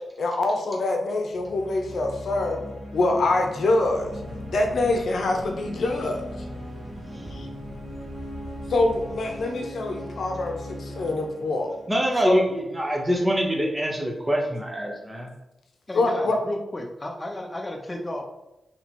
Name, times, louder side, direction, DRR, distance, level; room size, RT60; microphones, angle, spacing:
voice 1, 0.2-2.6 2.9-4.1 4.5-6.2 7.3-7.5 8.7-11.7 12.2-12.4 15.9-16.4, left 2 dB, 70° left, 3 dB, 0.7 m, -25 dB
sound 1, 1.3-12.8, equal, 60° right, 1.4 m, -39 dB
sound 2, 3.8-9.4, equal, 35° right, 1.4 m, -43 dB
voice 2, 11.9-15.3, equal, 15° right, 0 dB, 0.7 m, -25 dB
voice 3, 15.9-18.2, left 1 dB, 20° left, 2 dB, 0.6 m, -33 dB
2.9 x 2.8 x 4.3 m, 0.94 s
wide cardioid pair, 95°, 0 cm